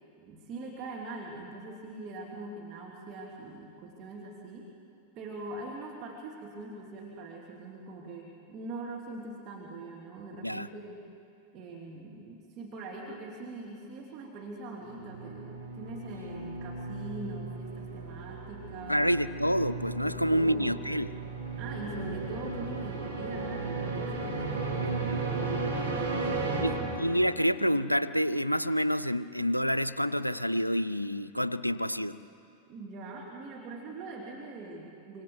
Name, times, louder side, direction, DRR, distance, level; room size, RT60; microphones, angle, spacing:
voice 1, 0.2-4.7 5.2-11.0 11.5-19.0 20.0-20.8 21.5-27.0 27.6-27.7 32.6-35.2, right 2 dB, 35° right, -2 dB, 2.7 m, -42 dB
sound 1, 14.9-27.5, right 3 dB, 75° right, 3.4 m, -35 dB
voice 2, 18.9-21.1 24.8-25.0 26.6-32.2, equal, 90° left, 15 dB, 0.5 m, -28 dB
26.0 x 25.5 x 4.7 m, 2.6 s
figure-of-eight pair, 90°, 0 cm